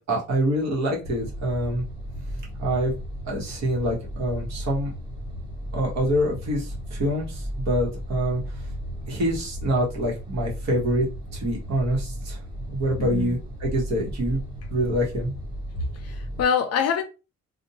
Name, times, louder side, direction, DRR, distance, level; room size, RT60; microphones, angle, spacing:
voice 1, 0.1-1.8 2.6-2.9 3.2-4.9 5.7-8.4 9.1-11.1 11.3-12.4 12.7-14.4 14.7-15.3, equal, 60° right, 1.1 m, -25 dB
sound 1, 1.0-16.4, equal, 15° right, 0.7 m, -35 dB
voice 2, 13.0-13.3 16.0-17.0, left 7 dB, 55° left, 0.5 m, -25 dB
2.5 x 2.2 x 2.7 m
cardioid pair, 170°, 30 cm